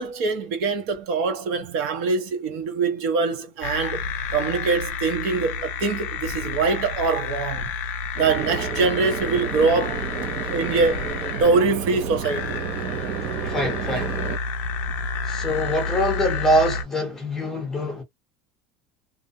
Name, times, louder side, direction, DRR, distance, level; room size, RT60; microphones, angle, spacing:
voice 1, 0.0-4.0 4.3-7.7 8.2-10.0 10.5-11.1 11.4-12.6 13.6-13.7, right 4 dB, 50° right, 0.7 m, -23 dB
sound 1, 3.6-16.8, left 5 dB, 40° left, 0.4 m, -30 dB
sound 2, 8.2-14.4, right 8 dB, 30° right, 0.3 m, -31 dB
voice 2, 13.4-14.2 15.2-18.0, equal, 10° left, 0.8 m, -24 dB
2.4 x 2.0 x 2.6 m
cardioid pair, 180°, 5 cm